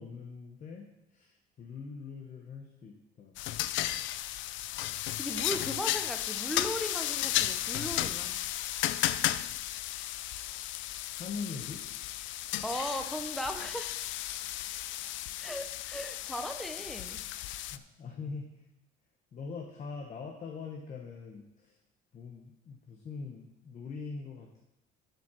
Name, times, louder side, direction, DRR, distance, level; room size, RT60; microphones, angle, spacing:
voice 1, 0.0-3.4 11.2-11.8 17.7-18.5 19.3-21.8 22.1-24.6, left 4 dB, 35° left, 2 dB, 1.1 m, -42 dB
sound 1, 3.4-17.8, left 14 dB, 70° left, 0.5 m, -34 dB
voice 2, 5.2-8.4 12.6-13.9 15.4-17.2, equal, ahead, 6 dB, 0.7 m, -37 dB
7.9 x 7.4 x 6.2 m, 0.85 s
cardioid pair, 160°, 21 cm